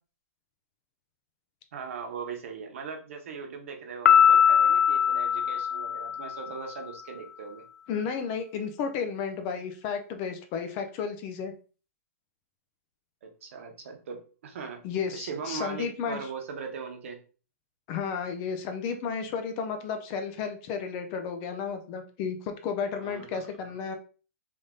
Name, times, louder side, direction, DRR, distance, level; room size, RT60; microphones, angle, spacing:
voice 1, 1.7-7.6 13.2-14.8 15.1-17.2 23.0-23.6, right 5 dB, 55° right, 4 dB, 0.9 m, -39 dB
Piano, 4.0-6.6, left 8 dB, 90° left, 0.4 m, -21 dB
voice 2, 7.9-11.5 14.8-16.2 17.9-23.9, left 6 dB, 25° left, 6 dB, 0.4 m, -33 dB
3.5 x 2.6 x 3.7 m, 0.37 s
hypercardioid pair, 165°, 8 cm